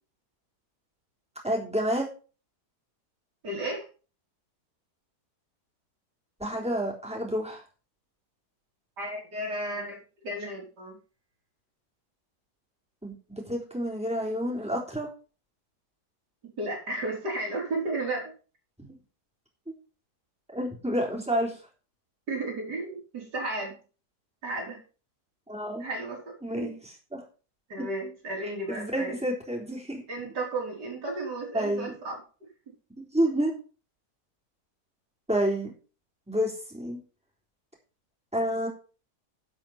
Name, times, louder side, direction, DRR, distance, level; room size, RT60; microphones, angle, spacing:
voice 1, 1.4-2.1 6.4-7.6 13.0-15.1 18.8-19.0 20.5-21.6 25.5-25.8 26.4-27.2 27.8-27.9 28.4-30.0 31.5-31.9 33.0-33.5 35.3-35.7 36.3-37.0 38.3-38.7, equal, 5° right, -2 dB, 3.7 m, -29 dB
voice 2, 3.4-3.9 9.0-11.0 16.6-18.3 22.3-23.7 24.4-24.8 25.8-26.7 27.7-29.2 30.1-32.2, right 2 dB, 90° right, -1 dB, 4.5 m, -33 dB
11.5 x 5.6 x 6.0 m, 0.36 s
omnidirectional pair, 1.7 m